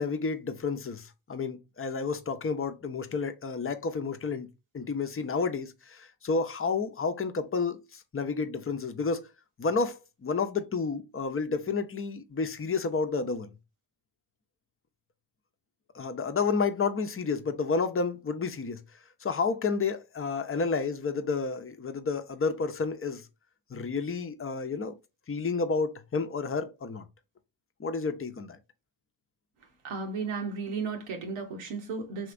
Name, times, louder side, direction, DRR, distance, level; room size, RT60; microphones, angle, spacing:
voice 1, 0.0-4.5 4.7-9.3 9.6-13.5 15.9-18.8 19.2-23.3 23.7-24.9 25.3-27.0 27.8-28.6, left 4 dB, 25° left, 0.7 m, -30 dB
voice 2, 29.8-32.3, right 4 dB, 85° right, 1.0 m, -34 dB
3.2 x 2.8 x 2.5 m
supercardioid pair, 50°, 49 cm